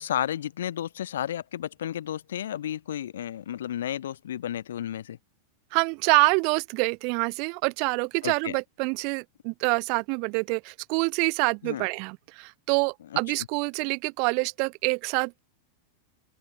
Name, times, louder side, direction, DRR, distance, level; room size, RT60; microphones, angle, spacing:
voice 1, 0.0-5.2 8.2-8.5 11.6-11.9, left 10 dB, 60° left, 3.6 m, -32 dB
voice 2, 5.7-15.4, right 36 dB, 45° right, 4.4 m, -26 dB
open air
figure-of-eight pair, 90°, 0 cm